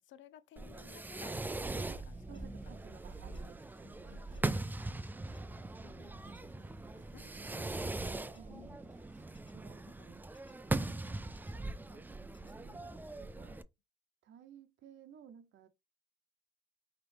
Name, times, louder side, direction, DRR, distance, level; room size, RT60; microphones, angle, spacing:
voice 1, 0.0-1.4 1.7-2.8 3.8-5.1 5.8-6.6 7.1-8.9 10.0-10.1 12.6-13.6, left 11 dB, 75° left, 0.5 m, -60 dB
Fireworks, 0.6-13.6, right 2 dB, 10° right, 0.3 m, -40 dB
sound 1, 1.5-9.3, right 3 dB, 35° right, 1.0 m, -65 dB
voice 2, 1.9-4.2 5.1-5.5 6.5-7.9 8.3-8.8 9.5-10.3 11.5-12.9 13.2-13.6 14.2-15.7, right 9 dB, 70° right, 0.7 m, -58 dB
sound 2, 2.3-2.4 3.3-3.4 4.3-4.4 5.3-5.4 6.3-6.4 7.3-7.4 8.3-8.4 9.3-9.5 10.3-10.6 11.3-11.5 12.3-12.6, left 3 dB, 25° left, 1.0 m, -66 dB
4.9 x 3.0 x 3.3 m
cardioid pair, 90°, 20 cm